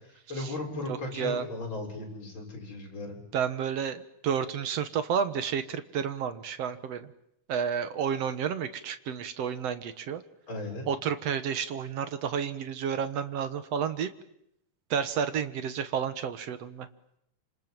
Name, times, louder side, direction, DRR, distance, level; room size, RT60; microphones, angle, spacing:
voice 1, 0.3-3.2 10.5-10.9, left 2 dB, 30° left, 0 dB, 7.6 m, -36 dB
voice 2, 0.9-1.5 3.3-7.1 7.5-10.2 10.9-14.1 14.9-16.9, right 7 dB, 60° right, 11 dB, 1.8 m, -31 dB
27.5 x 27.0 x 7.7 m, 0.77 s
omnidirectional pair, 4.2 m